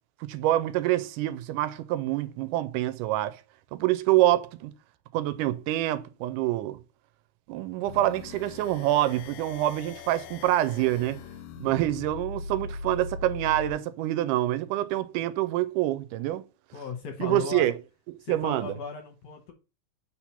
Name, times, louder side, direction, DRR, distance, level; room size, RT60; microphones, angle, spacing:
voice 1, 0.2-3.4 3.7-4.7 5.1-6.8 7.5-11.2 11.6-16.4 17.2-17.7 18.3-18.8, right 15 dB, 80° right, 2.0 m, -26 dB
sound 1, 7.8-13.8, left 4 dB, 90° left, 2.2 m, -40 dB
voice 2, 16.7-17.7 18.2-19.5, left 6 dB, 70° left, 1.7 m, -36 dB
4.4 x 4.3 x 5.6 m
omnidirectional pair, 3.7 m